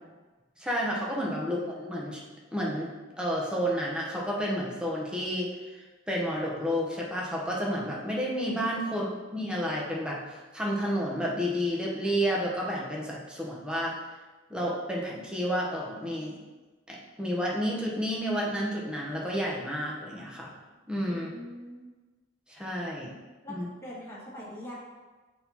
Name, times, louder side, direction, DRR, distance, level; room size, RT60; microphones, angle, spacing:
voice 1, 0.6-2.2 2.5-2.9 3.2-10.2 10.5-13.9 14.5-16.4 16.9-20.5 20.9-21.3 22.5-23.1 23.5-23.6, equal, 5° right, -4 dB, 1.0 m, -31 dB
voice 2, 1.4-1.7 8.8-9.1 21.1-21.9 23.4-24.8, left 1 dB, 15° left, -9 dB, 1.9 m, -43 dB
6.6 x 5.5 x 2.9 m, 1.3 s
head